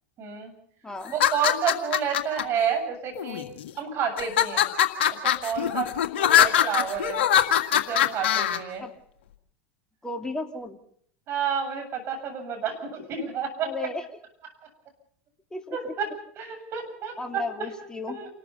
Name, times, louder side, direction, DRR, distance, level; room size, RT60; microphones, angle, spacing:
voice 1, 0.2-0.5 1.1-3.4 3.8-4.7 5.1-5.9 6.2-7.2 7.7-8.8 11.3-13.9 15.7-16.1 16.4-17.7 18.1-18.3, right 7 dB, 40° right, 5 dB, 7.7 m, -30 dB
voice 2, 0.8-1.1 8.8-8.9 10.0-10.8 13.6-14.0 15.5-15.9 17.2-18.2, left 3 dB, 10° left, 4 dB, 2.7 m, -34 dB
sound 1, 1.1-2.4 3.2-3.7 4.2-8.6, left 10 dB, 70° left, 2.0 m, -22 dB
28.5 x 14.0 x 7.0 m, 0.63 s
hypercardioid pair, 90°, 6 cm